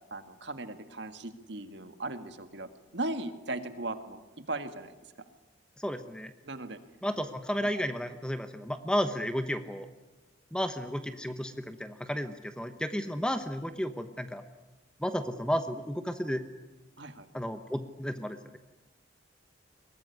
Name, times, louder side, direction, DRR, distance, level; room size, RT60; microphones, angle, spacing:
voice 1, 0.1-4.9 6.4-6.8 7.6-7.7 17.0-17.3, right 2 dB, 65° right, 8 dB, 1.8 m, -38 dB
voice 2, 5.8-6.3 7.0-9.9 10.5-14.4 15.0-16.4 17.3-18.6, equal, 5° left, 8 dB, 1.0 m, -33 dB
23.0 x 20.0 x 9.7 m, 1.2 s
head